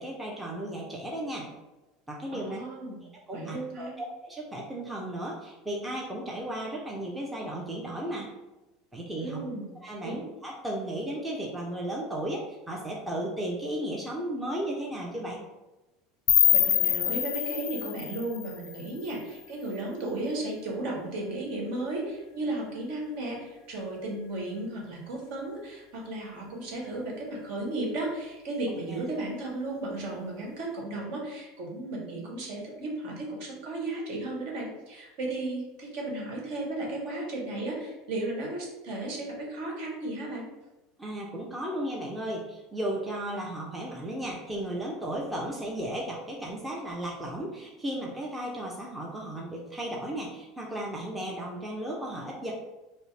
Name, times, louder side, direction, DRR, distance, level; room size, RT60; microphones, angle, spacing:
voice 1, 0.0-1.5 2.1-2.6 3.3-3.9 4.2-8.3 8.9-9.4 9.8-15.4 28.9-29.0 41.0-52.5, right 1 dB, 5° right, -3 dB, 0.6 m, -35 dB
voice 2, 2.3-3.0 3.3-4.0 9.2-9.7 10.0-10.3 16.5-40.5, right 2 dB, 60° right, -2 dB, 1.4 m, -34 dB
sound 1, 16.3-19.2, left 12 dB, 50° left, 0.4 m, -25 dB
5.3 x 2.0 x 3.3 m, 1.0 s
supercardioid pair, 145°, 0 cm